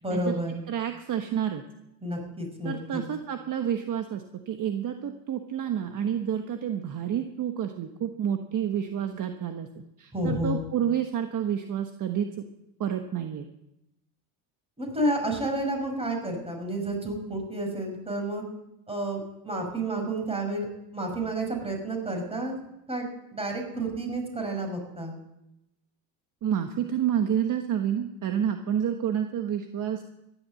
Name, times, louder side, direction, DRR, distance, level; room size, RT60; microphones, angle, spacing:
voice 1, 0.0-0.6 2.0-3.0 10.1-10.6 14.8-18.4 18.9-20.7 20.9-22.5 22.9-25.1, right 1 dB, 10° right, 3 dB, 5.4 m, -30 dB
voice 2, 0.7-1.6 2.6-12.4 12.8-13.5 26.4-30.0, right 9 dB, 40° right, 6 dB, 1.3 m, -29 dB
14.0 x 11.5 x 7.6 m, 0.87 s
supercardioid pair, 100°, 46 cm